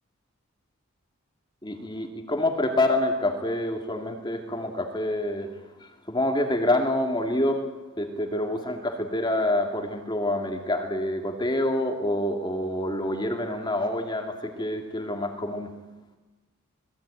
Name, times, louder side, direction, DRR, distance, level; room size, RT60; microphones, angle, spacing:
voice 1, 1.6-5.5 5.8-7.6 8.0-15.7, left 1 dB, 20° left, 4 dB, 2.5 m, -27 dB
27.0 x 20.5 x 9.2 m, 1.1 s
head